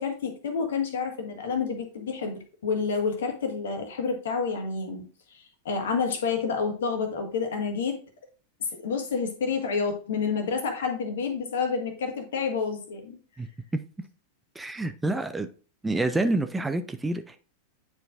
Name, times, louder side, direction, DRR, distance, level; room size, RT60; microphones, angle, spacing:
voice 1, 0.0-5.0 5.3-8.0 8.6-13.2, left 5 dB, 60° left, 1.5 m, -29 dB
voice 2, 14.6-15.5 15.8-17.4, right 2 dB, 10° right, 0.4 m, -27 dB
9.4 x 4.6 x 2.5 m
figure-of-eight pair, 90°, 0 cm